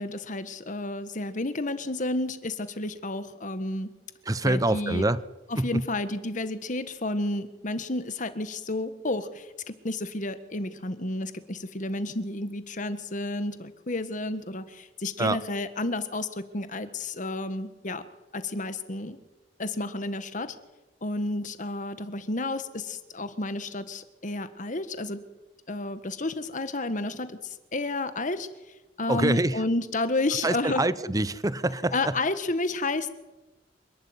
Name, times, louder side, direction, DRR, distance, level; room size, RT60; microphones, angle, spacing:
voice 1, 0.0-3.9 4.4-5.0 5.5-18.0 18.3-19.2 19.6-20.5 21.0-25.2 25.7-28.5 29.0-30.8 31.9-33.1, left 2 dB, 45° left, 11 dB, 1.6 m, -31 dB
voice 2, 4.3-5.2 5.6-5.8 15.2-15.4 29.1-29.5 30.4-31.9, right 2 dB, 20° right, 16 dB, 0.8 m, -25 dB
27.0 x 12.0 x 9.8 m, 1.1 s
head